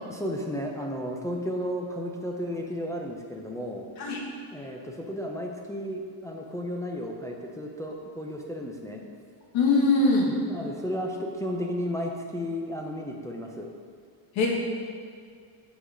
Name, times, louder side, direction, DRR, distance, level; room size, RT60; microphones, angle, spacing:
voice 1, 0.1-3.9 4.5-9.0 10.5-13.7, equal, 5° left, -1 dB, 0.5 m, -33 dB
voice 2, 9.5-10.3 14.4-14.5, left 3 dB, 75° left, -2 dB, 1.8 m, -21 dB
7.6 x 4.9 x 5.1 m, 2.2 s
cardioid pair, 135°, 48 cm